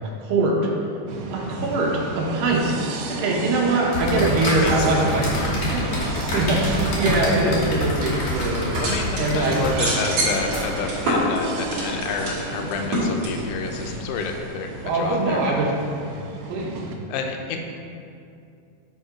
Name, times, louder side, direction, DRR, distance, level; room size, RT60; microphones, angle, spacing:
voice 1, 0.2-0.6 1.3-2.8 3.1-5.3 5.7-5.9 6.3-8.8 9.2-9.6 14.8-15.7 16.5-16.8, right 2 dB, 70° right, -3 dB, 2.4 m, -22 dB
sound 1, 1.1-16.9, right 3 dB, 90° right, 1.9 m, -34 dB
voice 2, 1.6-2.0 4.1-4.3 4.6-5.6 8.8-14.7 14.9-15.6 17.1-17.6, left 5 dB, 85° left, 3 dB, 2.6 m, -29 dB
sound 2, 3.9-11.0, left 1 dB, 70° left, 1.3 m, -27 dB
sound 3, 8.2-14.5, right 1 dB, 55° right, 2.1 m, -28 dB
8.2 x 3.4 x 4.9 m, 2.5 s
omnidirectional pair, 4.7 m